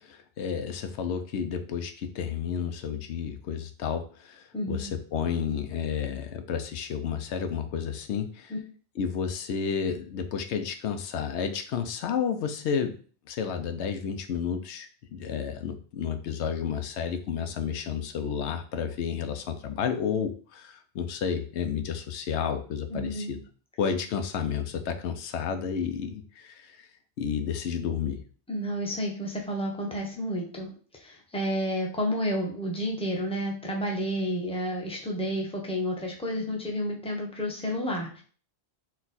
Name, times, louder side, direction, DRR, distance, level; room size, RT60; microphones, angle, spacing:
voice 1, 0.0-8.5 9.0-12.9 13.3-23.4 23.8-26.9 27.2-28.2, left 7 dB, 90° left, 8 dB, 0.9 m, -31 dB
voice 2, 4.5-4.9 8.5-8.6 22.9-23.3 28.5-38.2, equal, 5° left, -1 dB, 0.8 m, -31 dB
4.2 x 2.4 x 4.0 m, 0.41 s
omnidirectional pair, 1.1 m